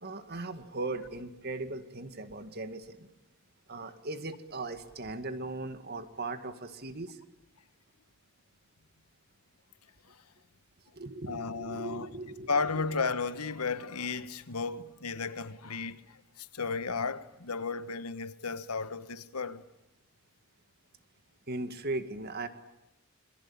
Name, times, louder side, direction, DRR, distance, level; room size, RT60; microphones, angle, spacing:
voice 1, 0.0-3.1 3.7-7.2 10.9-12.5 12.7-12.8 21.5-22.5, right 2 dB, 45° right, 2.1 m, -38 dB
voice 2, 11.3-12.1 12.5-19.6, left 4 dB, 90° left, 1.4 m, -34 dB
27.5 x 23.0 x 8.8 m
head